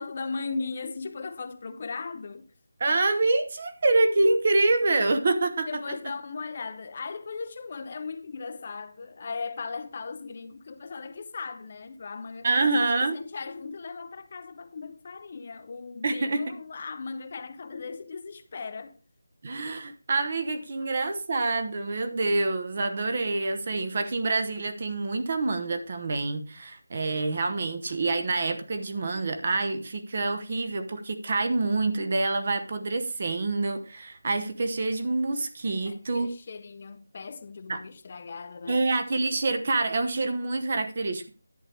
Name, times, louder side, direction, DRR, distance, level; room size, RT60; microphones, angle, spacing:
voice 1, 0.0-2.5 5.7-19.0 35.9-38.9, left 4 dB, 35° left, 0.6 m, -37 dB
voice 2, 2.8-6.0 12.4-13.2 16.0-16.4 19.4-36.3 37.7-37.8 38.7-41.4, right 3 dB, 35° right, 1.0 m, -26 dB
11.0 x 8.4 x 3.4 m
figure-of-eight pair, 175°, 0 cm